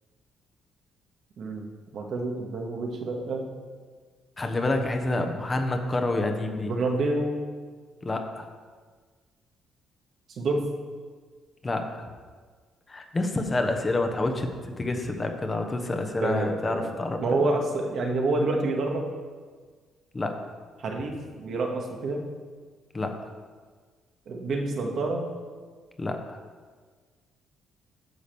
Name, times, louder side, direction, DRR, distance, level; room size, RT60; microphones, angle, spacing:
voice 1, 1.4-3.5 6.7-7.4 10.3-10.7 16.2-16.9 17.2-19.1 20.8-22.2 24.3-25.3, right 2 dB, 65° right, 1 dB, 1.7 m, -28 dB
voice 2, 4.4-6.7 8.0-8.5 11.6-11.8 12.9-17.2 20.1-20.3 22.9-23.1 26.0-26.4, left 2 dB, 25° left, 5 dB, 1.1 m, -28 dB
9.7 x 5.1 x 7.0 m, 1.5 s
cardioid pair, 95°, 0 cm